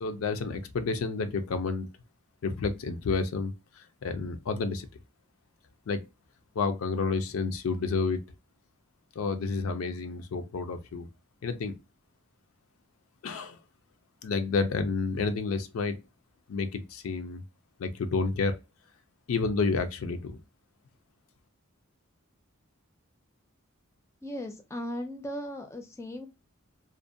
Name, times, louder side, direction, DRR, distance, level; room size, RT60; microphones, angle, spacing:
voice 1, 0.0-1.9 2.4-4.9 5.9-6.0 6.6-8.2 9.2-11.1 11.4-11.7 13.2-13.6 14.2-16.0 16.5-17.4 17.8-18.6 19.3-20.4, left 4 dB, 85° left, 0.4 m, -30 dB
voice 2, 24.2-26.3, equal, 15° left, 0.4 m, -37 dB
2.5 x 2.1 x 2.6 m
head